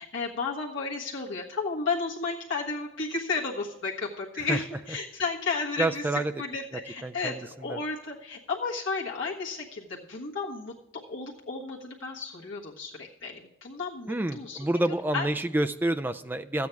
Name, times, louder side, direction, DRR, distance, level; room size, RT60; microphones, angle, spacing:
voice 1, 0.0-14.7 15.1-15.3, left 4 dB, 75° left, -4 dB, 1.4 m, -33 dB
voice 2, 5.8-6.3 7.0-7.8 14.1-16.7, right 1 dB, 10° right, 10 dB, 0.3 m, -28 dB
13.0 x 8.4 x 4.6 m, 0.93 s
head